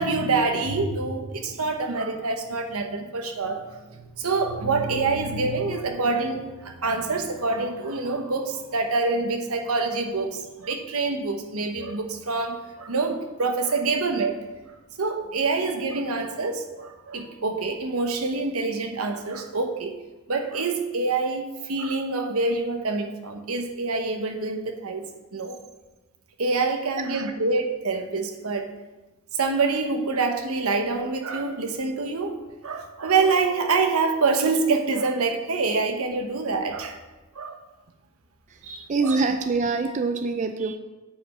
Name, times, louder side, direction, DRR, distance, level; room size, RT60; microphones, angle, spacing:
voice 1, 0.0-14.4 15.0-19.9 20.3-25.6 26.4-28.7 29.3-37.0 37.3-37.6 38.6-39.2, right 3 dB, 80° right, 5 dB, 1.0 m, -26 dB
voice 2, 38.5-40.8, right 4 dB, 35° right, 7 dB, 0.4 m, -25 dB
9.3 x 5.4 x 4.8 m, 1.1 s
head